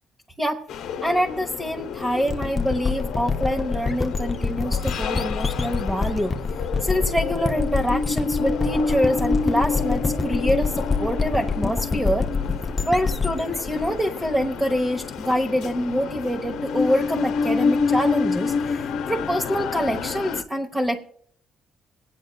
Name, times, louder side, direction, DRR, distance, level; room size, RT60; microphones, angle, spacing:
sound 1, 0.7-20.4, left 5 dB, 85° left, 0.7 m, -28 dB
voice 1, 1.0-6.3 6.8-12.3 12.9-21.0, equal, 10° right, 1 dB, 1.0 m, -25 dB
sound 2, 2.3-14.9, left 4 dB, 25° left, 0.6 m, -27 dB
28.0 x 9.3 x 2.3 m, 0.63 s
cardioid pair, 90°, 0 cm